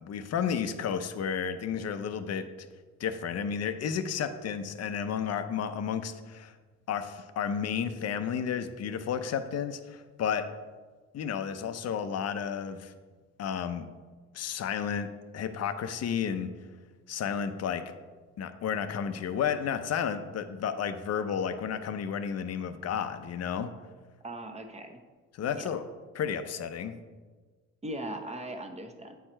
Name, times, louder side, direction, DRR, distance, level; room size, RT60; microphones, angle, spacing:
voice 1, 0.0-2.5 3.0-6.5 6.9-10.4 11.1-12.9 13.4-13.9 14.3-15.1 15.3-16.5 17.1-17.8 18.4-23.7 25.3-25.8 26.1-26.9, left 7 dB, 55° left, 9 dB, 0.6 m, -32 dB
voice 2, 24.2-25.0 25.5-25.7 27.8-29.2, right 1 dB, 20° right, 5 dB, 0.9 m, -39 dB
8.1 x 4.6 x 4.4 m, 1.4 s
cardioid pair, 90°, 30 cm